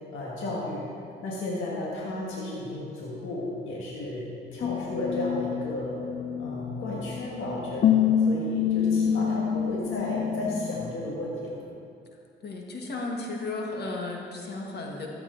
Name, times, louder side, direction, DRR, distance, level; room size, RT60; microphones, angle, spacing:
voice 1, 0.1-0.9 1.2-6.0 6.4-11.6, left 1 dB, 80° left, -4 dB, 1.7 m, -33 dB
sound 1, 4.6-10.9, left 8 dB, 40° left, 0.5 m, -27 dB
voice 2, 12.4-15.1, left 2 dB, 55° left, 0 dB, 1.7 m, -34 dB
14.0 x 7.8 x 3.9 m, 2.5 s
cardioid pair, 90°, 20 cm